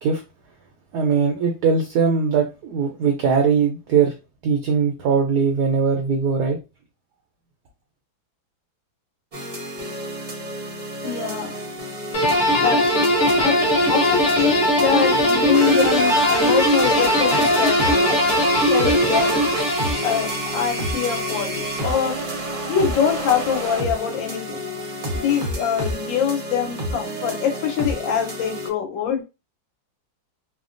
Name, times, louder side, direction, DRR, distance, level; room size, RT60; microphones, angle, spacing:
voice 1, 0.9-4.1 4.4-6.6, right 6 dB, 70° right, 0.9 m, -20 dB
sound 1, 9.3-28.7, right 1 dB, 40° right, 0.6 m, -29 dB
voice 2, 11.0-11.5 12.6-13.6 13.9-18.3 18.6-22.2 22.7-24.7 25.1-29.2, left 8 dB, 75° left, 1.5 m, -24 dB
sound 2, 12.1-20.5, equal, 45° left, 1.0 m, -19 dB
3.3 x 2.1 x 2.5 m
omnidirectional pair, 2.1 m